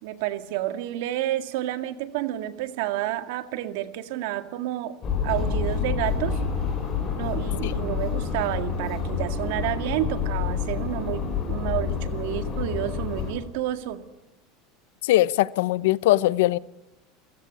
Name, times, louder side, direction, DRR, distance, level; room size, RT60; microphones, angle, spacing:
voice 1, 0.0-4.9 5.2-6.4 7.2-14.0, right 13 dB, 65° right, 2.0 m, -30 dB
sound 1, 5.0-13.3, left 6 dB, 25° left, 5.1 m, -28 dB
voice 2, 15.1-16.6, left 16 dB, 80° left, 0.8 m, -20 dB
29.5 x 15.5 x 8.5 m
supercardioid pair, 175°, 0 cm